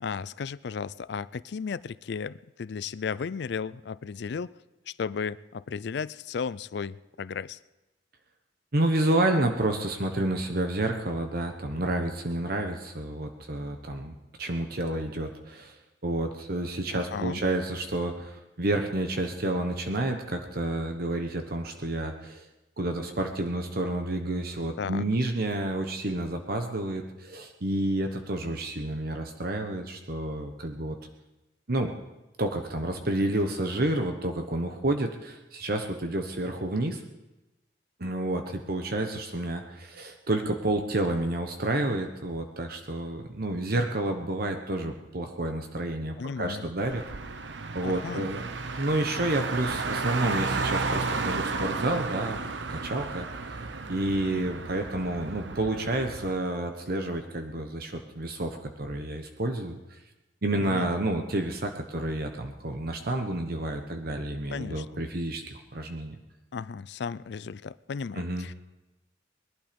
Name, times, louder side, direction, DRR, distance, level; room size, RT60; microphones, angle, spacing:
voice 1, 0.0-4.5 4.9-7.6 16.9-17.4 24.8-25.1 46.2-46.7 47.8-48.3 60.6-60.9 64.5-64.9 66.5-68.5, left 5 dB, 65° left, 18 dB, 0.4 m, -34 dB
voice 2, 8.7-22.5 22.8-31.0 31.7-31.9 32.4-37.0 38.0-47.0 47.7-48.4 48.8-52.4 52.7-53.3 53.9-60.0 60.4-66.2 68.1-68.5, right 1 dB, 55° right, 5 dB, 1.1 m, -30 dB
Car, 46.8-56.3, right 4 dB, 85° right, 0.9 m, -33 dB
21.0 x 12.0 x 5.2 m, 1.0 s
head